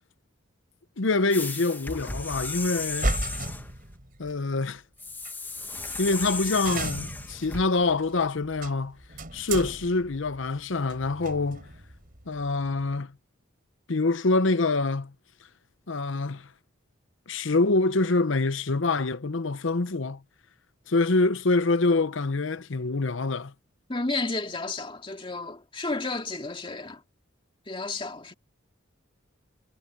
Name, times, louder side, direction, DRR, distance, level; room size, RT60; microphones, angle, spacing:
voice 1, 1.0-3.1 4.2-4.8 6.0-9.0 9.3-11.7 12.3-13.1 13.9-15.1 15.9-16.5 17.3-20.2 20.9-23.5, left 3 dB, 75° left, 0.8 m, -25 dB
sound 1, 1.3-3.7 5.0-7.6, left 3 dB, 10° left, 0.9 m, -35 dB
sound 2, 2.8-4.4 5.2-5.3 5.9-6.0 6.2-6.3 6.6-13.0, right 2 dB, 45° right, 4.6 m, -35 dB
voice 2, 23.9-27.0 27.7-28.3, left 3 dB, 25° left, 2.3 m, -32 dB
head